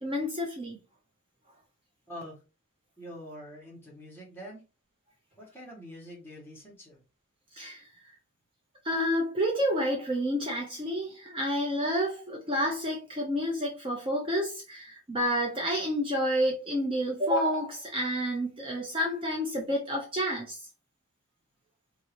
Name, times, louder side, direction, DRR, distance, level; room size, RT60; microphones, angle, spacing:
voice 1, 0.0-0.8 7.5-7.9 8.8-20.6, equal, 25° right, 0.6 m, -29 dB
voice 2, 2.1-2.4 3.0-4.6 5.4-7.0, equal, 10° left, 1.2 m, -45 dB
2.9 x 2.7 x 2.9 m
head